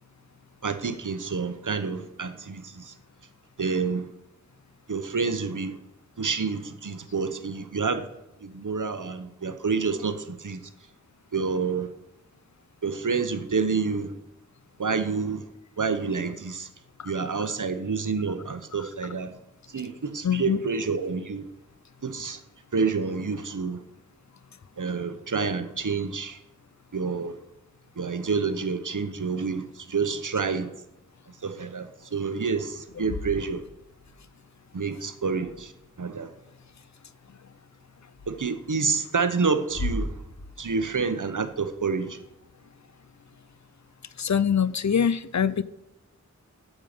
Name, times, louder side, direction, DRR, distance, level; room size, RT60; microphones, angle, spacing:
voice 1, 0.6-2.9 3.6-4.1 4.9-5.8 6.2-8.1 8.4-10.6 11.3-11.9 12.8-14.1 14.8-15.4 15.8-16.7 17.0-19.3 19.7-21.5 22.0-22.4 22.7-23.8 24.8-26.4 26.9-27.3 28.0-30.7 31.4-33.6 34.7-35.7 36.0-36.3 38.3-40.2 40.6-42.2, right 5 dB, 70° right, 0.9 m, -28 dB
voice 2, 20.2-20.6 44.2-45.6, left 7 dB, 60° left, 0.5 m, -24 dB
sound 1, 32.8-34.2 35.3-36.0 38.1-38.3 39.6-41.6, left 1 dB, 80° left, 2.7 m, -37 dB
9.0 x 7.4 x 6.6 m
wide cardioid pair, 55°, 32 cm